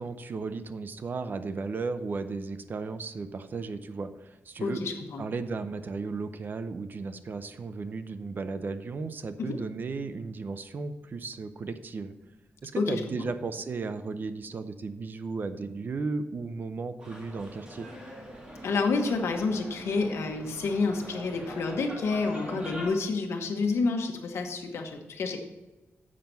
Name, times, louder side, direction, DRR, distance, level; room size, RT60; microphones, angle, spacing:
voice 1, 0.0-4.8 5.2-12.1 12.6-17.9, right 4 dB, 45° right, 11 dB, 0.6 m, -35 dB
voice 2, 4.6-5.2 9.4-9.6 12.8-13.3 18.6-25.4, left 4 dB, 80° left, 4 dB, 1.1 m, -29 dB
sound 1, 17.0-22.9, equal, 20° right, 2.3 m, -43 dB
7.4 x 5.9 x 5.4 m, 1.1 s
wide cardioid pair, 120°, 4 cm